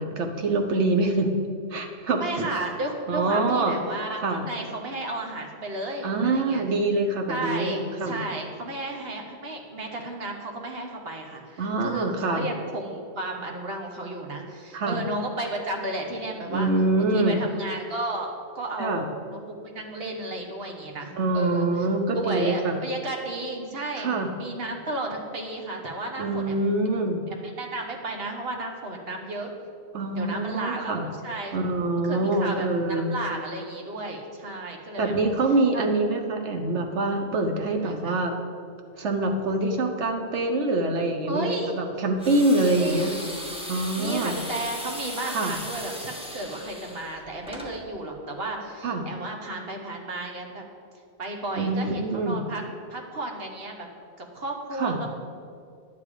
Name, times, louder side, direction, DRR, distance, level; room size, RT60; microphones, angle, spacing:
voice 1, 0.0-1.3 1.7-2.5 3.1-3.8 4.2-4.4 6.0-8.2 11.6-12.5 14.7-15.0 16.5-17.4 18.8-19.0 21.2-22.8 24.0-24.3 26.2-27.2 29.9-31.1 31.5-33.1 35.0-38.4 39.0-43.1 43.7-44.4 45.3-45.5 48.8-49.0 51.5-52.4 54.8-55.0, right 2 dB, 90° right, 4 dB, 1.3 m, -25 dB
voice 2, 2.2-6.6 7.3-16.7 17.0-21.9 22.1-26.7 27.4-29.5 30.2-31.5 32.0-35.1 35.7-35.8 37.8-38.2 41.3-41.7 42.6-43.0 44.0-50.6 51.2-52.6 52.9-53.9 54.2-55.2, right 2 dB, 60° right, 2 dB, 1.4 m, -33 dB
sound 1, 42.2-47.7, left 1 dB, 5° right, 1.3 m, -37 dB
10.5 x 7.3 x 4.9 m, 2.4 s
omnidirectional pair, 1.1 m